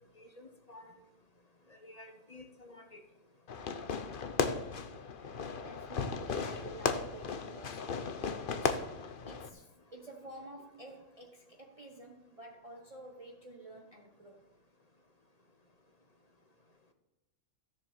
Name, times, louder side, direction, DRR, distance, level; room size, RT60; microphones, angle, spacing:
voice 1, 0.2-0.9 1.7-3.0, left 2 dB, 30° left, 1.3 m, -52 dB
Fireworks, 3.5-9.5, left 5 dB, 45° left, 0.9 m, -36 dB
voice 2, 5.6-14.5, right 2 dB, 25° right, 1.2 m, -51 dB
13.5 x 7.2 x 7.4 m
omnidirectional pair, 1.4 m